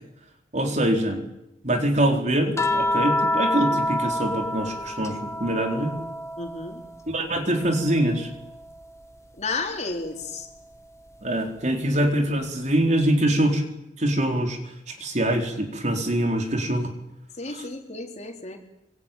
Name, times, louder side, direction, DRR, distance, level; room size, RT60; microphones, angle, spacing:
voice 1, 0.5-1.2 1.6-5.9 7.1-8.3 11.2-13.6 14.0-14.6 14.9-16.9, right 1 dB, 45° right, 4 dB, 4.1 m, -24 dB
sound 1, 2.6-7.1 7.4-9.0 10.6-10.7, left 1 dB, 15° left, 1.6 m, -28 dB
voice 2, 6.4-6.8 9.4-10.5 17.4-18.6, left 3 dB, 40° left, 3 dB, 4.3 m, -32 dB
25.0 x 24.5 x 9.2 m, 0.86 s
head